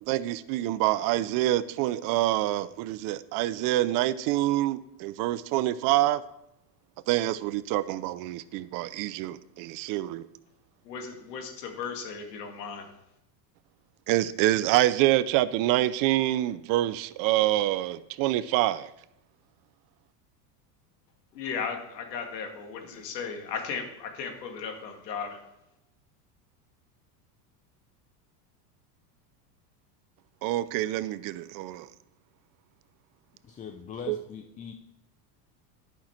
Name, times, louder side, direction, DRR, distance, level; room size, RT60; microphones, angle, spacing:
voice 1, 0.0-6.2 7.1-10.3 14.1-18.9 30.4-31.9 34.1-34.2, right 15 dB, 45° right, 0.5 m, -26 dB
voice 2, 10.8-12.9 21.3-25.4, left 6 dB, 85° left, 2.2 m, -36 dB
voice 3, 33.4-34.7, left 7 dB, 15° left, 0.4 m, -41 dB
11.5 x 5.8 x 4.4 m
supercardioid pair, 115°, 49 cm